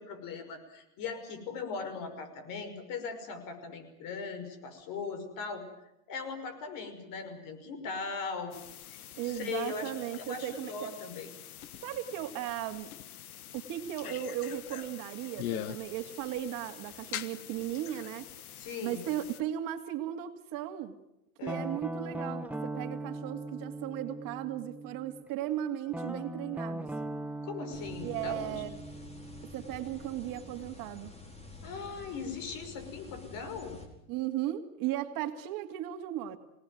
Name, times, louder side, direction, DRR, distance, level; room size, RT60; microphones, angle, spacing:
voice 1, 0.0-5.6 6.1-8.6 9.2-11.3 18.6-19.1 21.4-21.7 27.4-28.6 31.6-33.8, left 5 dB, 50° left, 8 dB, 5.6 m, -39 dB
sound 1, 8.5-19.4, left 11 dB, 85° left, 1.6 m, -44 dB
voice 2, 9.2-10.9 11.8-12.9 13.5-18.3 18.8-21.0 21.4-26.9 28.0-28.8 29.5-31.1 34.1-36.4, right 12 dB, 50° right, 7 dB, 2.4 m, -36 dB
Guitar, 21.5-25.2 25.9-30.6, right 2 dB, 5° right, 1.6 m, -40 dB
sound 2, 27.7-33.9, left 3 dB, 15° left, 4.7 m, -49 dB
26.5 x 18.5 x 9.4 m, 0.85 s
supercardioid pair, 115°, 42 cm